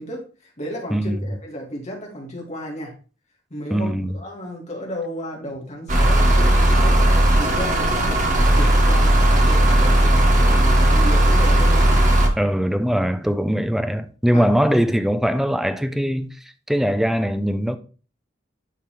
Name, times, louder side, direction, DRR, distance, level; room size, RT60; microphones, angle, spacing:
voice 1, 0.0-2.9 3.5-7.1 7.3-12.0 14.3-14.8, equal, 35° left, 2.3 m, -33 dB
voice 2, 0.9-1.3 3.7-4.2 12.4-16.4 16.7-17.8, equal, ahead, 0.5 m, -21 dB
sound 1, 5.9-12.3, right 1 dB, 40° right, 1.2 m, -16 dB
11.0 x 3.9 x 3.3 m
head